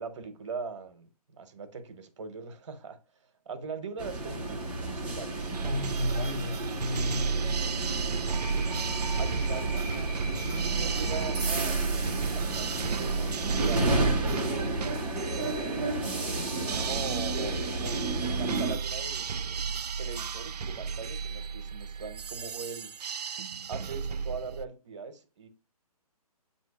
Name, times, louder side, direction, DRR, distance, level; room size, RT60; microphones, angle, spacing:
voice 1, 0.0-3.0 3.4-5.5 7.1-7.6 9.2-9.7 10.4-14.4 15.6-16.2 16.5-17.6 18.2-19.3 20.0-22.9 23.7-25.5, right 5 dB, 50° right, 1.0 m, -41 dB
sound 1, 4.0-18.7, right 2 dB, 5° right, 0.7 m, -32 dB
sound 2, 5.4-24.7, right 6 dB, 85° right, 0.4 m, -33 dB
voice 2, 5.6-7.4, left 2 dB, 15° left, 1.2 m, -33 dB
7.6 x 2.9 x 4.8 m
hypercardioid pair, 155°, 20 cm